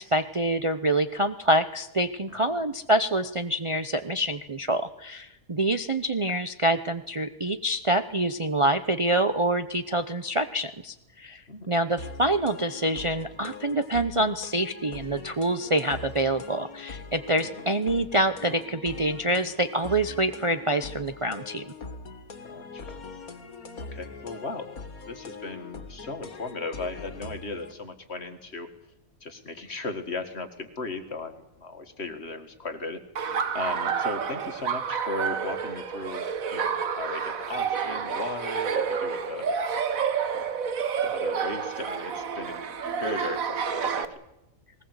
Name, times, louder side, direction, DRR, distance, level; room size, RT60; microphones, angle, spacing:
voice 1, 0.0-11.4 11.7-21.7, right 1 dB, 30° right, 9 dB, 0.7 m, -26 dB
sound 1, 12.0-27.7, left 4 dB, 85° left, 2.3 m, -42 dB
voice 2, 22.4-23.0 23.9-24.7 25.1-28.7 29.2-36.3 36.5-39.9 40.3-40.5 41.0-42.7 43.0-44.2, left 3 dB, 50° left, 8 dB, 2.1 m, -37 dB
Laughter, 33.2-44.1, right 6 dB, 70° right, 1.7 m, -29 dB
20.5 x 19.5 x 8.1 m, 0.89 s
omnidirectional pair, 1.5 m